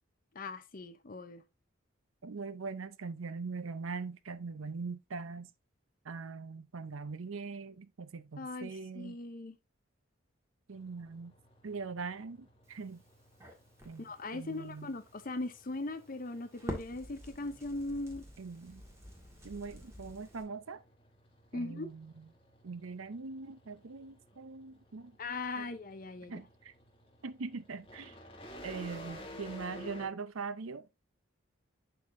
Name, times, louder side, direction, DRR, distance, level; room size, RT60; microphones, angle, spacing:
voice 1, 0.3-1.4 8.4-9.6 14.0-18.2 21.5-21.9 25.2-26.3, left 2 dB, 40° left, 0.6 m, -39 dB
voice 2, 2.2-5.5 6.0-9.2 10.7-11.3 11.6-13.0 13.8-14.9 18.4-18.8 19.4-20.8 21.5-22.3 22.6-25.2 25.6-25.7 26.2-26.7 27.2-28.2 28.6-30.9, right 4 dB, 75° right, 0.6 m, -42 dB
sound 1, 10.7-30.1, left 1 dB, 25° left, 2.0 m, -54 dB
Crackle, 12.6-20.4, equal, 15° right, 1.6 m, -49 dB
11.0 x 3.9 x 2.6 m
head